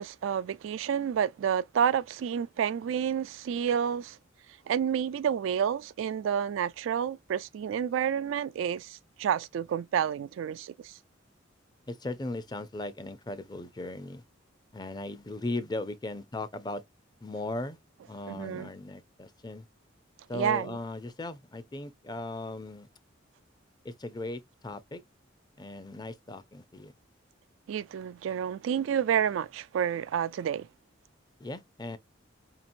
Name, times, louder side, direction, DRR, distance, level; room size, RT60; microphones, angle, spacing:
voice 1, 0.0-4.2 4.7-10.9 18.3-18.7 20.3-20.8 27.7-30.7, right 8 dB, 80° right, 0.3 m, -29 dB
voice 2, 11.9-14.2 14.7-16.8 17.2-17.8 18.1-19.6 20.3-22.9 23.8-25.0 25.6-26.9 31.4-32.0, left 2 dB, 20° left, 0.5 m, -37 dB
5.0 x 2.9 x 2.5 m
head